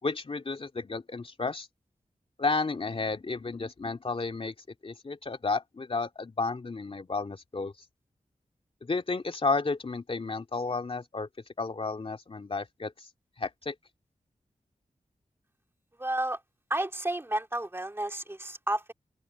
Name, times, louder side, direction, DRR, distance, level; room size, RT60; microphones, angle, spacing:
voice 1, 0.0-1.7 2.4-4.5 4.8-7.7 8.8-11.3 11.6-13.1 13.4-13.7, left 3 dB, 45° left, 2.4 m, -32 dB
voice 2, 16.0-16.4 16.7-18.9, right 1 dB, 20° right, 2.3 m, -31 dB
open air
wide cardioid pair, 110°, 13 cm